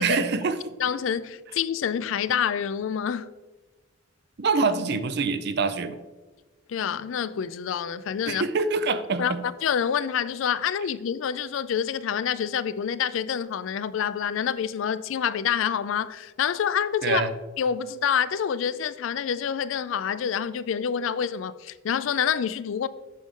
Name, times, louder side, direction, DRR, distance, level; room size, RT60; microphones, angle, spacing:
voice 1, 0.0-0.7 4.4-6.0 8.3-9.4 17.0-17.3, right 4 dB, 55° right, 0.5 m, -25 dB
voice 2, 0.8-3.3 6.7-8.5 9.2-17.3 17.6-22.9, left 8 dB, 75° left, 0.4 m, -27 dB
8.2 x 6.6 x 3.6 m
head